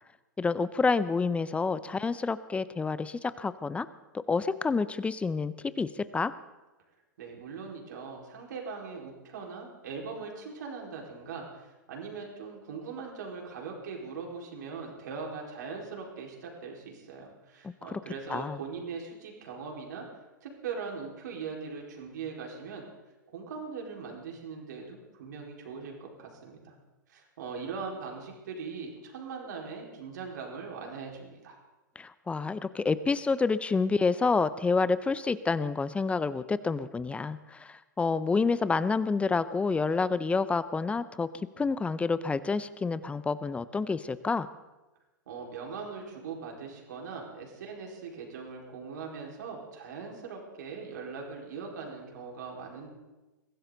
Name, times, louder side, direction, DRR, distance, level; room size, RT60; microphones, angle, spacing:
voice 1, 0.4-3.9 4.1-6.3 17.6-18.0 18.3-18.6 32.0-41.3 41.6-44.5, left 4 dB, 10° left, 15 dB, 0.6 m, -28 dB
voice 2, 7.2-20.0 20.4-22.8 23.3-26.7 27.1-31.6 45.3-52.9, right 5 dB, 65° right, 0 dB, 4.7 m, -40 dB
22.5 x 16.0 x 4.0 m, 1.1 s
hypercardioid pair, 105°, 10 cm